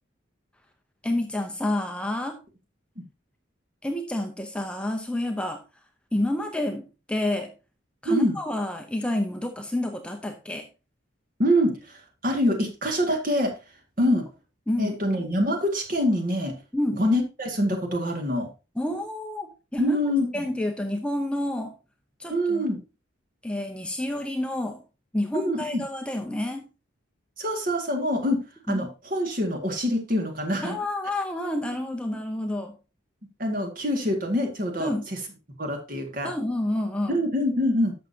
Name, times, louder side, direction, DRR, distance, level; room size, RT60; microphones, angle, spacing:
voice 1, 1.0-2.4 3.8-5.6 6.1-7.5 8.0-10.7 14.0-14.1 14.7-15.0 16.7-17.0 18.8-20.0 20.3-21.7 22.2-22.6 23.4-24.8 25.1-26.7 28.7-28.8 30.6-32.8 34.8-35.1 36.2-37.2, left 1 dB, 5° left, 4 dB, 0.7 m, -29 dB
voice 2, 8.1-8.4 11.4-13.5 14.0-14.2 14.8-16.5 17.0-18.5 19.8-20.5 22.3-22.8 25.3-25.8 27.4-28.4 28.7-30.8 33.4-34.9 35.6-36.3 37.1-37.9, equal, 45° right, 3 dB, 2.1 m, -25 dB
11.5 x 7.0 x 2.8 m, 0.30 s
head